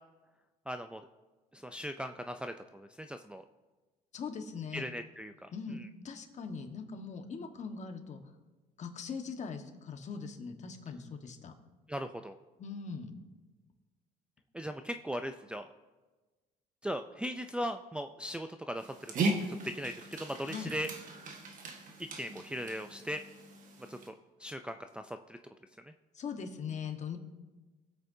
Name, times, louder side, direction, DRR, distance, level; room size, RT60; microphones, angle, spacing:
voice 1, 0.7-1.1 1.5-3.4 4.7-5.9 11.9-12.3 14.5-15.7 16.8-20.9 22.1-23.2 23.9-24.1 24.4-25.4 25.8-25.9, equal, 5° right, 6 dB, 0.4 m, -39 dB
voice 2, 4.1-4.9 5.5-5.8 6.0-8.2 8.8-11.5 12.6-13.1 20.4-20.7 26.1-27.2, left 5 dB, 45° left, 5 dB, 1.4 m, -41 dB
Dog, 18.8-24.1, right 2 dB, 50° right, 1.4 m, -38 dB
22.0 x 8.1 x 2.7 m, 1.2 s
cardioid pair, 110°, 17 cm